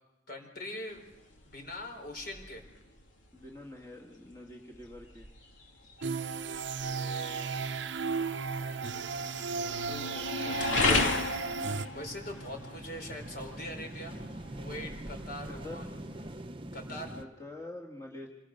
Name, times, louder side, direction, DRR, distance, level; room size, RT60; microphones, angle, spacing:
voice 1, 0.3-1.0 1.4-2.6 6.4-7.7 11.9-14.2 14.6-15.9 16.7-17.1, left 1 dB, 50° left, 4 dB, 4.6 m, -42 dB
sound 1, 0.9-16.4, left 3 dB, 80° left, 2.8 m, -36 dB
voice 2, 3.3-5.3 9.5-10.6 15.5-15.8 17.2-18.3, left 2 dB, 15° left, -2 dB, 1.9 m, -46 dB
sound 2, 6.0-11.9, right 5 dB, 65° right, 0.7 m, -34 dB
sound 3, 11.7-17.3, right 1 dB, 25° right, 0.8 m, -44 dB
27.0 x 20.5 x 6.6 m, 0.99 s
head